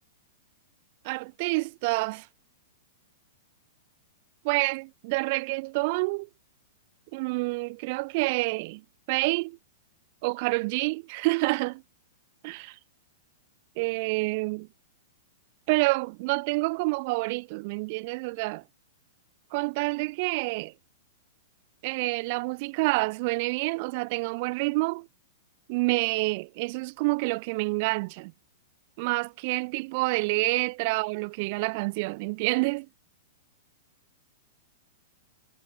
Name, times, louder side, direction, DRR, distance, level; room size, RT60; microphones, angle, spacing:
voice 1, 1.0-2.3 4.4-6.3 7.1-8.8 9.1-9.6 10.2-11.8 12.4-12.8 13.8-14.7 15.7-18.6 19.5-20.7 21.8-25.1 25.7-28.3 29.0-32.9, right 26 dB, 50° right, 4.6 m, -28 dB
hypercardioid pair, 125°, 0 cm